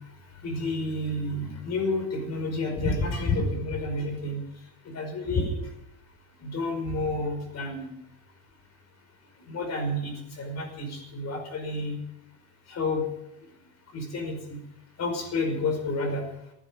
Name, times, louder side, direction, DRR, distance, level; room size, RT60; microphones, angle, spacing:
voice 1, 0.4-4.4 4.9-5.6 6.4-7.9 9.5-12.0 12.7-13.1 13.9-14.6 15.0-16.2, left 2 dB, 40° left, 5 dB, 5.4 m, -30 dB
15.5 x 10.0 x 7.1 m, 0.83 s
supercardioid pair, 115°, 41 cm